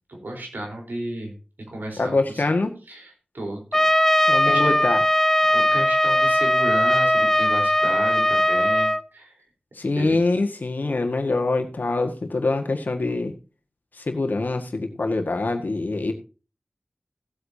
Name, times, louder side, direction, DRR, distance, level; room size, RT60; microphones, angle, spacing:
voice 1, 0.1-1.3 1.7-2.4 2.9-3.9 4.2-4.9 5.5-9.4 10.0-10.2, right 1 dB, 85° right, 1 dB, 4.1 m, -33 dB
voice 2, 2.0-2.7 4.3-5.0 9.8-13.3 14.0-16.1, left 3 dB, 70° left, 4 dB, 1.8 m, -24 dB
Trumpet, 3.7-9.0, left 1 dB, 10° left, 0.5 m, -19 dB
17.0 x 8.2 x 2.8 m, 0.34 s
wide cardioid pair, 50°, 3 cm